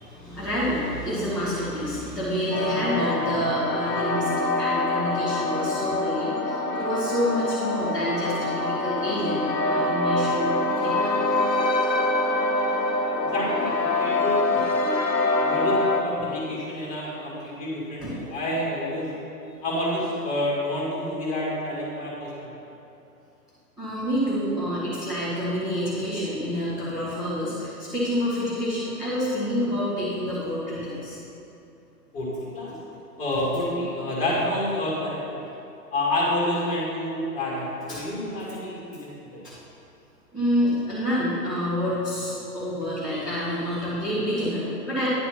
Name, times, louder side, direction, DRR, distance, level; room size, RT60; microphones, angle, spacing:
voice 1, 0.0-10.9 14.5-14.6 14.9-15.1 18.0-18.2 23.8-31.2 37.9-38.0 39.4-39.5 40.3-45.1, equal, ahead, -14 dB, 0.7 m, -28 dB
sound 1, 2.5-16.0, left 2 dB, 90° left, 0.9 m, -25 dB
voice 2, 13.2-14.4 15.4-19.1 19.6-22.3 32.1-32.7 33.2-35.2 35.9-39.4, left 1 dB, 15° left, -5 dB, 1.9 m, -28 dB
9.8 x 4.1 x 5.8 m, 2.8 s
figure-of-eight pair, 125°, 49 cm